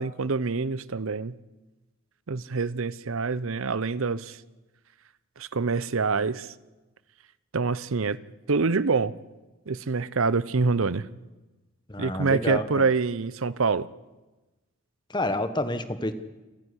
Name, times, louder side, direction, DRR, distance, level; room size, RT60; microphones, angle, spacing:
voice 1, 0.0-1.3 2.3-4.4 5.4-6.5 7.5-8.2 8.5-9.1 9.7-11.1 12.0-13.9, right 4 dB, 70° right, 18 dB, 0.7 m, -26 dB
voice 2, 11.9-12.8 15.1-16.1, left 1 dB, 20° left, 10 dB, 1.2 m, -29 dB
28.5 x 10.5 x 9.9 m, 1.1 s
head